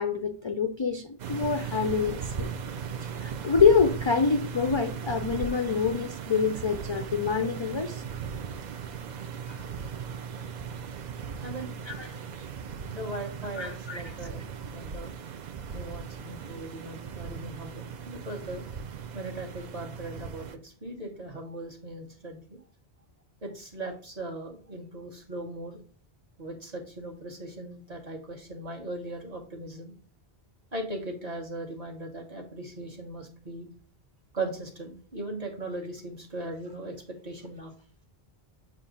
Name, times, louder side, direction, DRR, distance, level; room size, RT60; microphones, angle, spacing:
voice 1, 0.0-2.5 3.0-8.0 9.5-9.6 11.9-12.4 13.6-14.2, left 5 dB, 50° left, 0.3 m, -26 dB
sound 1, 1.2-20.6, right 6 dB, 55° right, 0.5 m, -38 dB
voice 2, 11.4-11.7 12.9-15.1 15.7-18.6 19.1-22.6 23.4-25.8 26.4-29.9 30.7-33.7 34.3-37.7, right 2 dB, 40° right, 1.3 m, -39 dB
7.3 x 2.5 x 5.1 m
omnidirectional pair, 1.0 m